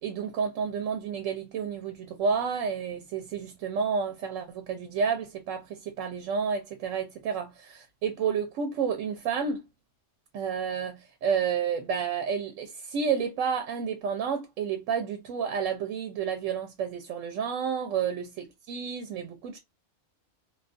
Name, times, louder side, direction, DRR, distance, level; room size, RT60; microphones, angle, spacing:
voice 1, 0.0-9.6 10.3-19.6, right 6 dB, 90° right, 1.0 m, -30 dB
2.6 x 2.3 x 2.3 m
omnidirectional pair, 1.3 m